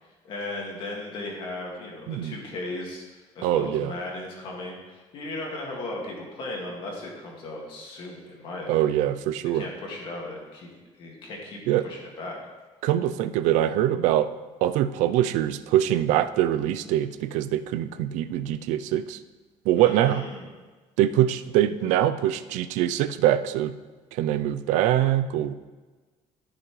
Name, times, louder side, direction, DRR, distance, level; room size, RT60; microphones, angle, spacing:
voice 1, 0.2-3.0 3.4-9.0 9.5-10.7 11.0-11.6 11.8-12.4 19.8-20.5, left 2 dB, 45° left, -1 dB, 2.0 m, -36 dB
voice 2, 3.4-3.9 8.7-9.6 11.7-11.9 12.8-14.3 14.6-19.2 19.7-20.2 21.0-23.7 24.1-25.5, right 12 dB, 90° right, 12 dB, 0.5 m, -23 dB
13.5 x 6.0 x 3.2 m, 1.3 s
cardioid pair, 180°, 12 cm